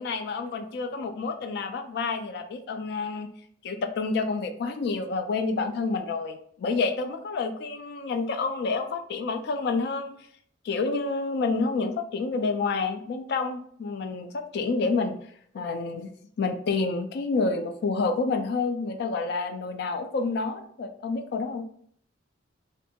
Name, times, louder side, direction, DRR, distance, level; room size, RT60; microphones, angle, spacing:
voice 1, 0.0-3.3 3.6-10.2 10.6-15.2 15.5-16.1 16.4-21.6, left 4 dB, 55° left, 7 dB, 0.3 m, -29 dB
2.5 x 2.2 x 2.7 m, 0.62 s
head